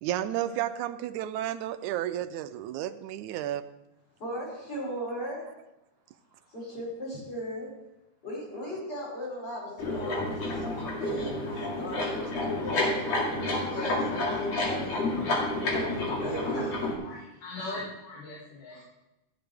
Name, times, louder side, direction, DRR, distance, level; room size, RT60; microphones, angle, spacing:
voice 1, 0.0-3.6, right 12 dB, 80° right, 10 dB, 1.8 m, -32 dB
voice 2, 4.2-5.4 6.5-7.7 8.2-11.4 11.8-14.9 15.6-16.8, equal, 30° left, -5 dB, 6.2 m, -37 dB
sound 1, 9.8-16.9, left 2 dB, 55° left, 3.2 m, -30 dB
voice 3, 17.0-18.8, left 2 dB, 75° left, -6 dB, 3.8 m, -40 dB
15.0 x 11.5 x 3.4 m, 0.94 s
omnidirectional pair, 3.7 m